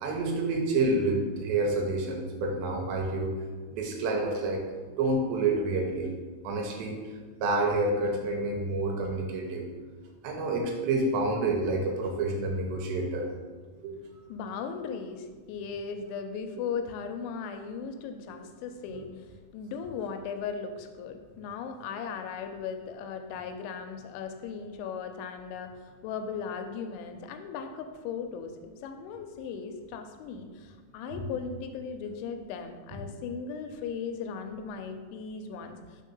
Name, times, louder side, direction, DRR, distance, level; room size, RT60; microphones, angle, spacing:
voice 1, 0.0-3.3 3.7-4.7 5.0-6.1 6.4-7.0 7.4-9.6 10.2-13.3 13.8-13.9 18.9-19.0 31.1-31.3, right 2 dB, 75° right, 1 dB, 2.9 m, -28 dB
voice 2, 14.3-19.3 19.5-36.0, left 6 dB, 85° left, 6 dB, 2.9 m, -37 dB
6.4 x 3.9 x 5.4 m, 1.4 s
omnidirectional pair, 5.3 m